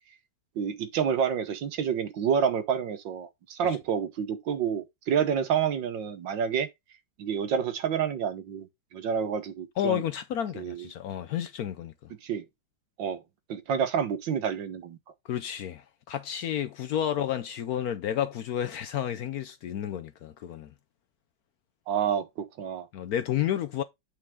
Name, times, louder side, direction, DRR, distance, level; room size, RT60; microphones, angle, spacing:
voice 1, 0.6-6.7 7.2-8.7 8.9-10.0 10.5-10.9 12.2-12.5 13.0-13.2 13.5-15.0 21.9-22.9, right 7 dB, 80° right, 1.7 m, -28 dB
voice 2, 9.8-11.9 15.3-20.7 22.9-23.8, left 10 dB, 70° left, 0.9 m, -31 dB
8.8 x 4.8 x 3.6 m
omnidirectional pair, 2.0 m